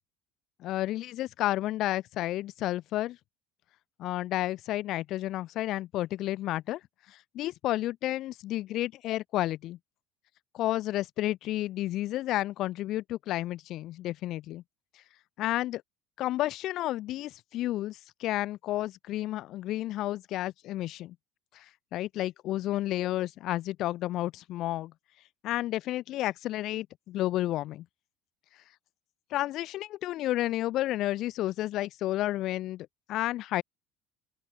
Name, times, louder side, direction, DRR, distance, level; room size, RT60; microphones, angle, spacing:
voice 1, 0.6-3.2 4.0-6.8 7.1-9.8 10.5-14.6 15.4-15.8 16.2-21.2 21.5-21.7 21.9-24.9 25.4-27.9 29.3-33.6, left 15 dB, 55° left, 2.0 m, -31 dB
open air
cardioid pair, 125°, 0 cm